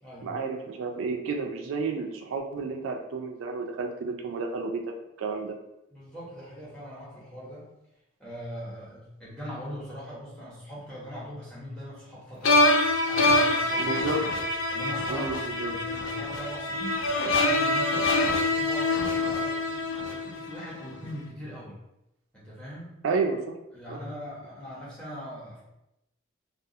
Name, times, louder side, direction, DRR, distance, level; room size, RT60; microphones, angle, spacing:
voice 1, 0.2-4.8 5.2-5.5 13.8-14.2 15.1-15.7 23.0-23.6 23.9-24.0, right 4 dB, 85° right, 3 dB, 0.3 m, -31 dB
voice 2, 5.9-7.7 8.2-12.6 13.1-14.2 14.7-17.0 17.3-21.8 22.3-23.0 23.7-25.6, equal, 5° left, -8 dB, 0.8 m, -41 dB
sound 1, 12.4-20.6, left 2 dB, 80° left, 0.4 m, -25 dB
2.3 x 2.3 x 2.7 m, 0.88 s
head